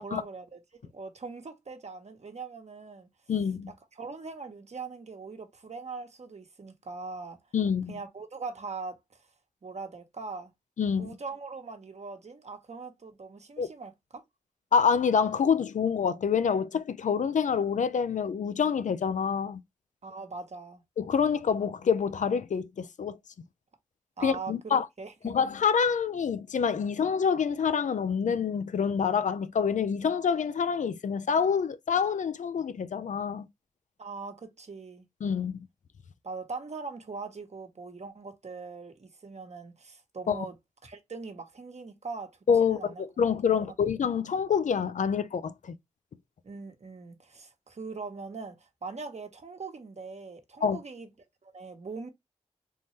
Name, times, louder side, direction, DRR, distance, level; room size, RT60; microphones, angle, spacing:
voice 1, 0.0-3.1 3.9-7.4 7.9-9.2 9.6-10.5 11.0-14.2 20.0-20.8 24.2-25.3 34.0-35.0 36.2-40.6 40.8-42.3 42.6-43.0 43.5-43.8 46.4-51.1 51.4-52.1, right 4 dB, 65° right, 1.0 m, -41 dB
voice 2, 3.3-3.7 7.5-7.9 10.8-11.1 13.6-13.7 14.7-19.6 21.0-23.2 24.2-24.9 25.2-33.5 35.2-35.6 40.3-40.5 42.5-45.8 50.6-50.8, left 6 dB, 85° left, 0.4 m, -27 dB
3.6 x 2.7 x 3.1 m
cardioid pair, 55°, 12 cm